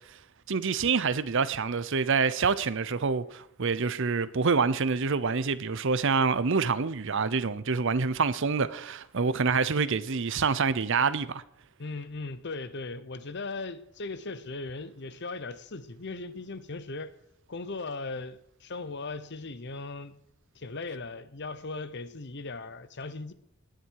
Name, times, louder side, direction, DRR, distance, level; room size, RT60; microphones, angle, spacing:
voice 1, 0.5-11.4, right 5 dB, 60° right, 0.7 m, -26 dB
voice 2, 11.8-17.1 17.5-20.1 20.5-23.3, left 3 dB, 50° left, 0.9 m, -38 dB
18.5 x 10.5 x 4.7 m
head